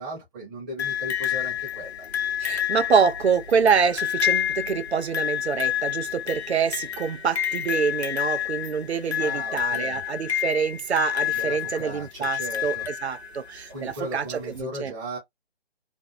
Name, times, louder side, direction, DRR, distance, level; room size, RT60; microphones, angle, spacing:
voice 1, 0.0-2.1 9.2-10.0 11.2-12.9 13.7-15.2, right 1 dB, 20° right, 0.8 m, -37 dB
sound 1, 0.8-13.6 14.6-14.7, left 10 dB, 85° left, 0.8 m, -29 dB
voice 2, 2.4-14.9, right 6 dB, 85° right, 0.6 m, -26 dB
2.6 x 2.1 x 2.3 m
figure-of-eight pair, 150°, 32 cm